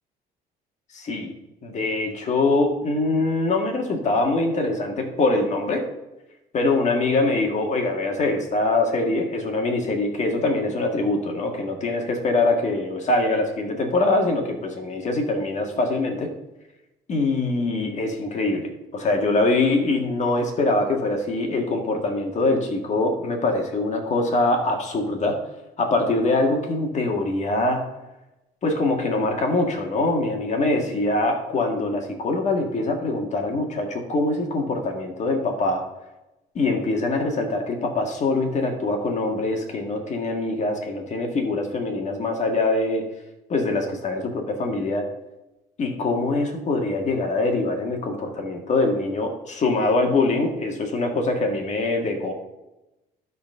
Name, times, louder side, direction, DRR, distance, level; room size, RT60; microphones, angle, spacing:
voice 1, 0.9-1.3 1.6-5.8 6.5-16.3 17.1-25.4 25.8-27.8 28.6-35.9 36.6-43.1 43.5-45.1 45.8-52.3, left 2 dB, 45° left, 3 dB, 1.8 m, -23 dB
12.0 x 4.2 x 5.5 m, 0.98 s
cardioid pair, 110°, 17 cm